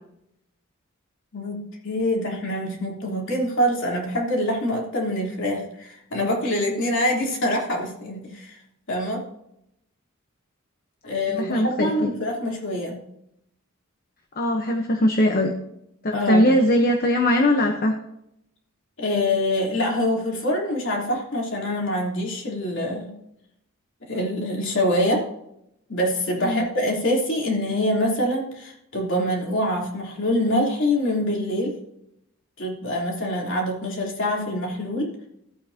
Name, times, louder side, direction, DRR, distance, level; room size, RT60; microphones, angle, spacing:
voice 1, 1.3-8.6 8.9-9.2 11.0-13.0 16.1-16.5 19.0-23.1 24.1-25.2 25.9-31.7 32.6-35.1, left 1 dB, 60° left, -1 dB, 3.2 m, -25 dB
voice 2, 11.3-12.1 14.4-15.5 16.0-17.9 26.4-26.7, left 1 dB, 45° left, 3 dB, 1.0 m, -20 dB
14.5 x 8.5 x 2.8 m, 0.78 s
head